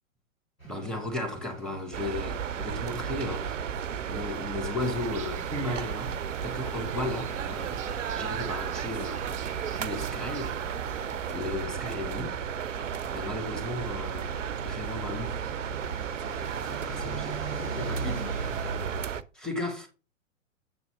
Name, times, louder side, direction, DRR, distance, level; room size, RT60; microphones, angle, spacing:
sound 1, 0.6-19.2, right 3 dB, 90° left, 3.4 m, -43 dB
voice 1, 0.7-3.6 4.1-6.2 6.4-7.8 8.1-9.3 9.7-10.6 11.3-12.4 13.1-14.3 14.6-15.3 16.6-18.2 19.3-19.9, left 2 dB, ahead, 2.0 m, -35 dB
sound 2, 1.9-19.2, right 8 dB, 70° right, 0.6 m, -34 dB
sound 3, 4.8-11.4, right 8 dB, 20° right, 0.8 m, -44 dB
7.8 x 3.9 x 6.8 m
figure-of-eight pair, 110°, 40 cm